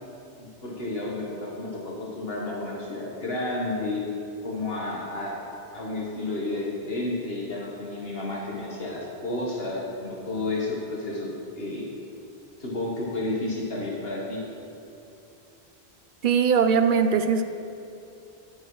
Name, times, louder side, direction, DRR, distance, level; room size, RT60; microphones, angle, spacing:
voice 1, 0.4-4.1 4.4-5.4 5.7-11.9 12.6-14.4, left 2 dB, 65° left, -3 dB, 1.4 m, -31 dB
voice 2, 16.2-17.4, right 6 dB, 60° right, 8 dB, 0.6 m, -20 dB
12.0 x 10.5 x 3.1 m, 2.8 s
omnidirectional pair, 1.1 m